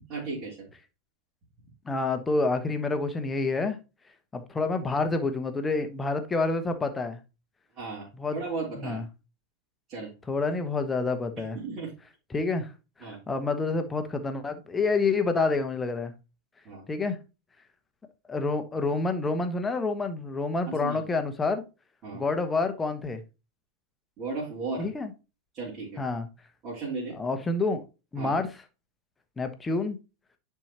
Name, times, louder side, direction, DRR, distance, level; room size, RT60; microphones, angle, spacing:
voice 1, 0.1-0.7 7.8-9.0 9.9-10.1 11.6-11.9 13.0-13.2 16.6-16.8 20.8-21.0 22.0-22.2 24.2-24.9 25.5-26.0 26.6-27.2 28.2-28.4, right 3 dB, 35° right, 3.2 m, -35 dB
voice 2, 1.8-3.8 4.3-7.2 8.1-8.4 8.8-9.1 10.3-11.6 12.3-12.7 13.0-16.1 16.9-17.2 18.3-21.6 22.1-23.2 24.8-25.1 26.0-26.3 27.1-27.8 28.1-28.6 29.4-30.0, left 3 dB, 15° left, 1.2 m, -28 dB
10.5 x 4.7 x 2.9 m
figure-of-eight pair, 90°, 0 cm